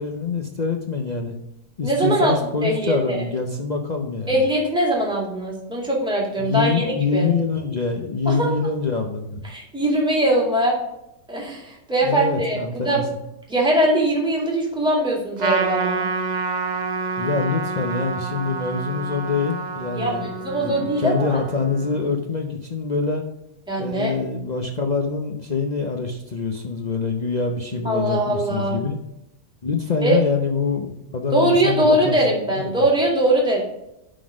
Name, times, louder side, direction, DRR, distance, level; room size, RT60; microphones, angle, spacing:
voice 1, 0.0-1.3 1.8-4.4 6.4-9.5 12.0-13.0 17.2-23.2 23.8-29.0 29.6-32.2 32.5-32.9, left 4 dB, 80° left, 2 dB, 0.3 m, -25 dB
voice 2, 1.8-2.3 2.6-3.2 4.3-7.3 8.3-8.5 9.4-10.8 11.3-13.0 13.5-16.1 19.9-21.4 23.7-24.1 27.8-28.8 30.0-30.2 31.3-33.6, right 1 dB, 5° right, -2 dB, 2.1 m, -21 dB
Trumpet, 15.4-22.1, right 4 dB, 45° right, 0.5 m, -28 dB
11.5 x 4.0 x 4.8 m, 0.87 s
omnidirectional pair, 1.9 m